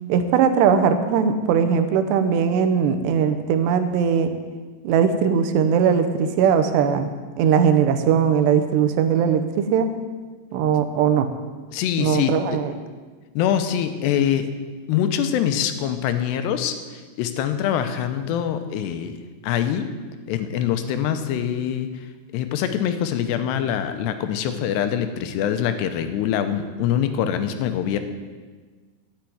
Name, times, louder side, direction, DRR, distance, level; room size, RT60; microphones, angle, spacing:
voice 1, 0.1-4.3 4.8-7.1 7.4-9.9 10.5-11.3 12.0-12.7, right 7 dB, 90° right, 8 dB, 3.1 m, -19 dB
voice 2, 11.7-12.6 13.3-14.5 14.9-19.2 19.4-19.9 20.3-21.9 22.3-28.0, left 9 dB, 90° left, 9 dB, 3.0 m, -24 dB
11.5 x 7.4 x 9.3 m, 1.4 s
omnidirectional pair, 4.8 m